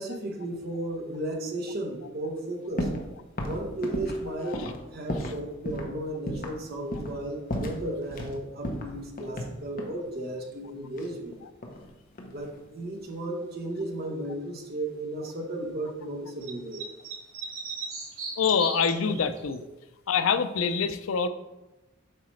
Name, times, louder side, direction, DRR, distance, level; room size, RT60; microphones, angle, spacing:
voice 1, 0.0-2.9 3.4-11.4 12.3-16.8, right 1 dB, 50° right, 1 dB, 1.0 m, -34 dB
sound 1, 2.8-3.1 3.4-5.4 5.7-5.9 6.3-6.6 6.9-7.2 7.5-8.3 8.6-10.0 11.0-11.9 12.2-12.6, equal, 45° left, 0.9 m, -34 dB
sound 2, 16.4-19.6, right 4 dB, 85° right, 1.4 m, -37 dB
voice 2, 18.4-19.6 20.1-21.3, left 6 dB, 85° left, 11 dB, 0.5 m, -25 dB
7.6 x 4.8 x 3.2 m, 1.0 s
head